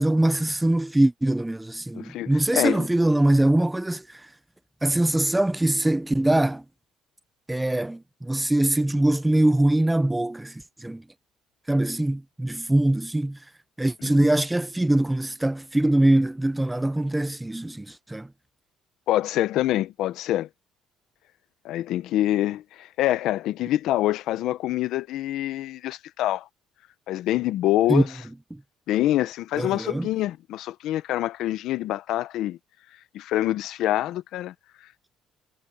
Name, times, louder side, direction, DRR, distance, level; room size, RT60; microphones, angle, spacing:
voice 1, 0.0-4.2 4.8-6.6 7.5-11.0 11.7-13.4 13.8-18.3 27.9-28.1 28.5-28.6 29.6-30.1, right 1 dB, 5° right, 0.4 m, -23 dB
voice 2, 1.9-2.8 14.0-14.3 19.1-20.5 21.6-26.5 27.1-28.1 28.9-32.6 33.1-34.5, left 14 dB, 65° left, 0.7 m, -26 dB
cardioid pair, 160°, 0 cm